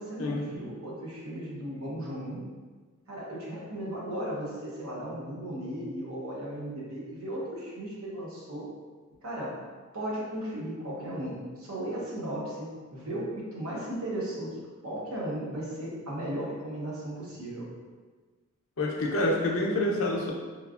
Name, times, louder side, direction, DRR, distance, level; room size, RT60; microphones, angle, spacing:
voice 1, 0.0-2.4 3.1-8.6 9.2-9.6 9.9-14.6 14.8-17.7, right 1 dB, 85° right, -5 dB, 0.8 m, -36 dB
voice 2, 18.8-20.3, left 1 dB, 70° left, -2 dB, 0.5 m, -27 dB
3.0 x 2.3 x 2.4 m, 1.4 s
head